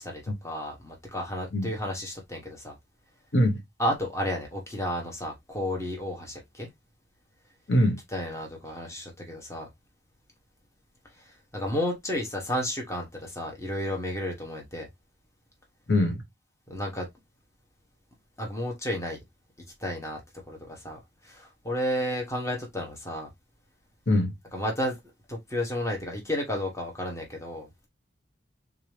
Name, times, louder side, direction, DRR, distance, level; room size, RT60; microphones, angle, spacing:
voice 1, 0.0-2.7 3.8-6.7 8.1-9.7 11.5-14.9 16.7-17.1 18.4-19.2 19.8-20.2 20.5-23.3 24.5-25.0 25.3-27.9, left 1 dB, 15° left, 1.1 m, -32 dB
voice 2, 7.7-8.0 15.9-16.2 24.1-24.3, left 1 dB, 70° left, 1.1 m, -22 dB
3.6 x 2.9 x 3.2 m
head